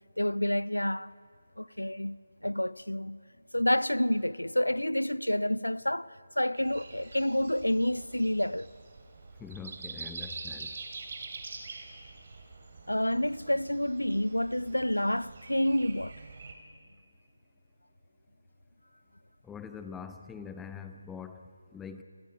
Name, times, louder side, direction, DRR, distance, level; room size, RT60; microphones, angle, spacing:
voice 1, 0.2-1.1 1.6-2.2 2.4-3.2 3.5-8.7 12.9-16.1, left 1 dB, 85° left, 0.6 m, -29 dB
Breathing, 6.6-16.5, right 4 dB, 40° right, 3.1 m, -45 dB
voice 2, 9.4-10.7 19.4-22.0, left 6 dB, 5° left, 0.7 m, -44 dB
28.0 x 22.5 x 5.4 m
figure-of-eight pair, 155°, 0 cm